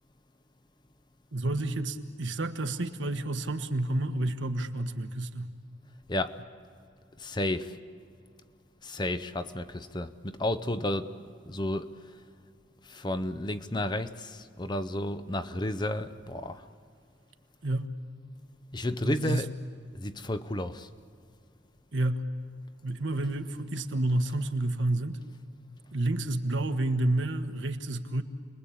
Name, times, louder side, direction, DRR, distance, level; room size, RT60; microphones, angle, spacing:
voice 1, 1.3-5.5 17.6-17.9 19.0-19.5 21.9-22.2 22.8-25.2 25.9-28.2, right 2 dB, 70° right, 1.4 m, -30 dB
voice 2, 6.1-6.4 7.2-7.8 8.8-12.0 12.9-16.6 18.7-19.5 19.9-20.9, left 1 dB, 20° left, 0.7 m, -32 dB
30.0 x 21.5 x 8.6 m
head